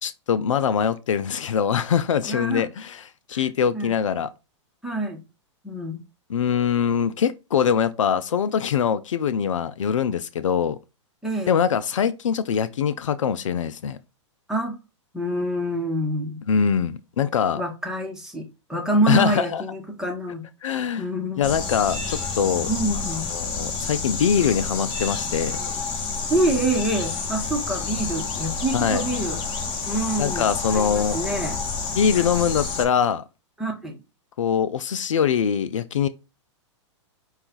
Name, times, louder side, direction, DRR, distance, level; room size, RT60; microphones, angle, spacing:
voice 1, 0.0-4.3 6.3-10.8 11.5-14.0 16.5-17.6 19.1-19.6 20.6-21.1 21.4-22.7 23.3-25.6 28.7-29.0 30.2-31.2 32.0-33.2 34.4-36.1, left 7 dB, 85° left, 0.4 m, -23 dB
voice 2, 2.3-2.7 3.3-3.4 3.7-3.9 4.8-5.2 5.6-6.0 11.2-11.5 14.5-14.8 15.1-16.4 17.5-20.4 21.0-21.4 22.7-23.3 26.3-29.4 29.9-31.6 33.6-34.0, right 1 dB, 5° right, 1.1 m, -26 dB
sound 1, 21.4-32.9, left 4 dB, 35° left, 1.2 m, -29 dB
5.4 x 2.4 x 3.8 m
hypercardioid pair, 120°, 16 cm